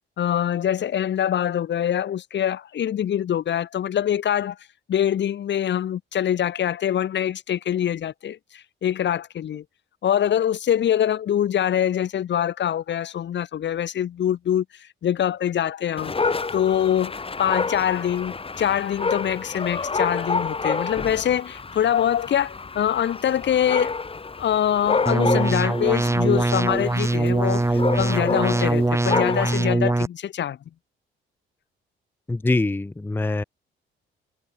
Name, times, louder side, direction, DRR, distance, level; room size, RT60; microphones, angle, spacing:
voice 1, 0.2-4.6 4.9-9.6 10.0-23.9 24.4-30.6, left 10 dB, 65° left, 3.2 m, -24 dB
Dog, 16.0-29.7, left 4 dB, 30° left, 3.6 m, -29 dB
sound 1, 25.1-30.1, right 2 dB, 15° right, 2.3 m, -22 dB
voice 2, 32.3-33.4, left 2 dB, 10° left, 0.5 m, -24 dB
cardioid pair, 90°, 20 cm